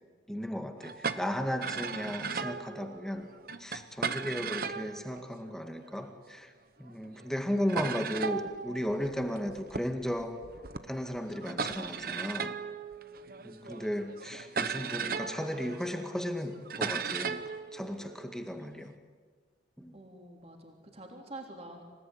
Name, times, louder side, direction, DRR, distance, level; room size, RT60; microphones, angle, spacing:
voice 1, 0.3-3.3 3.6-6.5 6.8-10.4 10.9-12.6 13.4-17.4 17.7-18.9 19.8-20.0, equal, 5° left, 5 dB, 1.9 m, -35 dB
sound 1, 0.8-6.1 6.9-7.0 7.2-7.3 7.7-18.9, right 5 dB, 50° right, 1.0 m, -38 dB
voice 2, 19.9-21.8, right 2 dB, 35° right, 2 dB, 3.5 m, -47 dB
27.0 x 18.0 x 10.0 m, 1.5 s
head